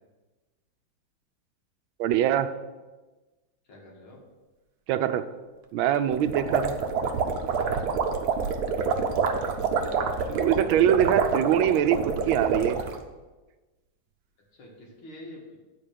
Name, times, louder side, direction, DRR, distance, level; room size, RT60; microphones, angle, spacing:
voice 1, 2.0-2.5 4.9-5.2 5.7-6.7 10.3-12.8, right 10 dB, 80° right, 11 dB, 1.4 m, -23 dB
voice 2, 3.7-4.2 7.6-8.2 14.5-15.6, left 1 dB, 85° left, -2 dB, 2.9 m, -46 dB
sound 1, 6.1-13.0, right 5 dB, 60° right, 1.1 m, -27 dB
8.9 x 4.6 x 6.6 m, 1.2 s
omnidirectional pair, 2.2 m